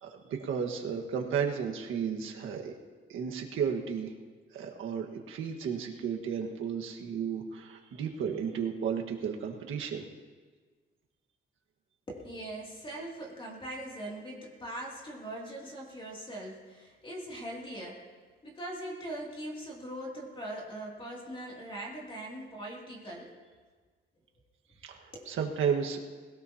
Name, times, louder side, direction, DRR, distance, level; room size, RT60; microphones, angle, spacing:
voice 1, 0.0-2.7 3.1-4.1 4.5-10.1 24.8-26.0, right 7 dB, 85° right, 2 dB, 1.6 m, -33 dB
voice 2, 12.1-18.1 18.4-23.3 25.1-25.3, right 1 dB, 25° left, -2 dB, 2.6 m, -41 dB
20.5 x 18.0 x 2.8 m, 1.4 s
cardioid pair, 135°, 20 cm